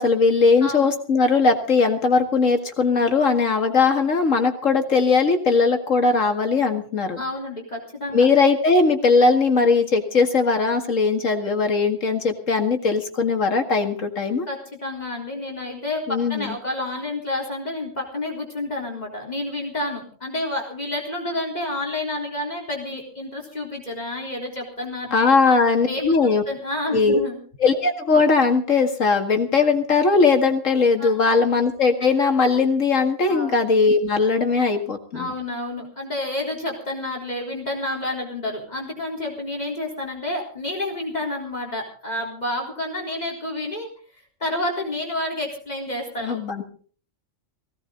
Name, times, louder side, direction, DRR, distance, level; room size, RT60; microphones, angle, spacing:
voice 1, 0.0-7.2 8.1-14.5 16.1-16.5 25.1-26.4 26.9-27.2 27.6-35.3 46.2-46.6, left 4 dB, 70° left, 5 dB, 2.3 m, -19 dB
voice 2, 7.2-8.3 14.5-16.0 16.3-25.3 25.8-27.4 31.0-31.1 33.3-33.6 35.1-43.9 44.4-46.4, left 1 dB, 30° left, 0 dB, 3.8 m, -29 dB
18.0 x 17.0 x 3.9 m, 0.43 s
omnidirectional pair, 1.4 m